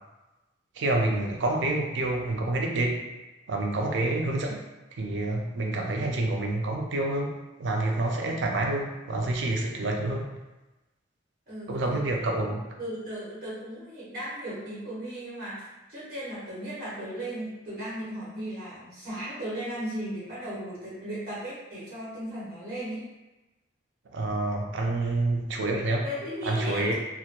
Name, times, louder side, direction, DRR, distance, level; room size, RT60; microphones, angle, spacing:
voice 1, 0.8-3.0 3.5-4.6 5.0-7.3 7.6-10.3 11.7-12.6 24.1-26.0 26.5-26.9, right 2 dB, 70° right, 1 dB, 0.4 m, -28 dB
voice 2, 11.5-12.0 12.8-23.0 26.0-26.9, right 1 dB, 50° right, -8 dB, 1.0 m, -36 dB
2.2 x 2.1 x 2.8 m, 1.1 s
head